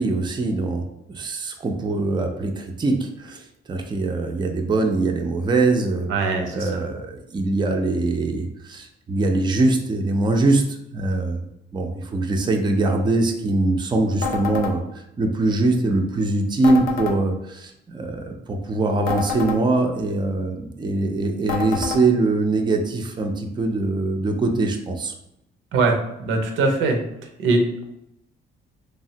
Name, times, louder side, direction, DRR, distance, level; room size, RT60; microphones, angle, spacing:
voice 1, 0.0-6.1 6.5-11.5 11.7-25.1, right 2 dB, 20° right, 3 dB, 0.4 m, -22 dB
voice 2, 6.1-6.8 25.7-25.9 26.2-27.0 27.4-27.8, right 3 dB, 85° right, 3 dB, 0.6 m, -21 dB
sound 1, 14.2-14.8 16.6-17.2 19.1-19.6 21.5-22.0, left 5 dB, 90° left, 0.5 m, -27 dB
3.2 x 2.0 x 2.7 m, 0.81 s
cardioid pair, 90°, 20 cm